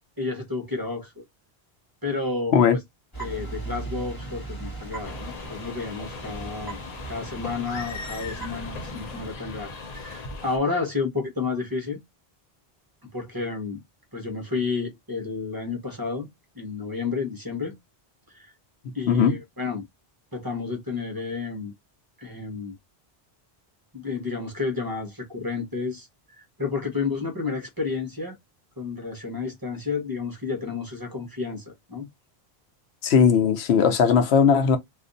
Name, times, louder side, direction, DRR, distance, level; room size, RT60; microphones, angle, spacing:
voice 1, 0.2-1.2 2.0-2.8 3.2-6.8 7.1-12.0 13.1-13.8 14.1-16.3 16.5-17.7 18.3-18.5 18.9-19.8 20.3-21.7 22.2-22.8 23.9-28.4 28.8-32.1, left 4 dB, 20° right, 0.9 m, -31 dB
sound 1, 3.1-9.4, right 3 dB, 20° left, 1.2 m, -38 dB
sound 2, 5.0-10.6, left 4 dB, 45° left, 0.7 m, -38 dB
voice 2, 33.0-34.8, left 6 dB, 85° left, 0.9 m, -18 dB
2.5 x 2.5 x 3.8 m
omnidirectional pair, 1.1 m